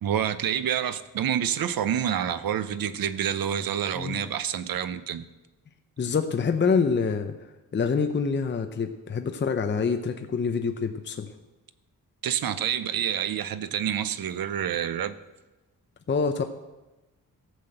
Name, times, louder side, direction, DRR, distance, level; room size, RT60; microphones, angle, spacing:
voice 1, 0.0-5.2 12.2-15.2, right 9 dB, 80° right, 0.7 m, -28 dB
voice 2, 6.0-7.4 7.7-11.3 16.1-16.4, left 5 dB, 35° left, 0.7 m, -26 dB
14.5 x 5.9 x 7.8 m
wide cardioid pair, 130°, 34 cm